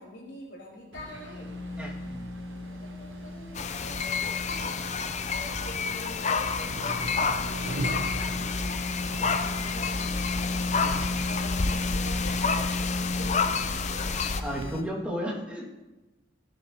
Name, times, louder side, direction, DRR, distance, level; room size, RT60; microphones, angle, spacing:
voice 1, 0.0-1.8 2.4-14.1, left 1 dB, 80° left, -3 dB, 4.3 m, -46 dB
sound 1, 0.9-14.7, right 2 dB, 90° right, 0.8 m, -43 dB
sound 2, 1.0-14.8, left 2 dB, 55° left, 1.1 m, -36 dB
voice 2, 1.8-2.3 10.8-11.0 14.4-15.7, equal, 5° right, -6 dB, 2.7 m, -34 dB
sound 3, 3.5-14.4, left 5 dB, 40° left, 0.6 m, -29 dB
16.0 x 10.5 x 3.2 m, 1.1 s
head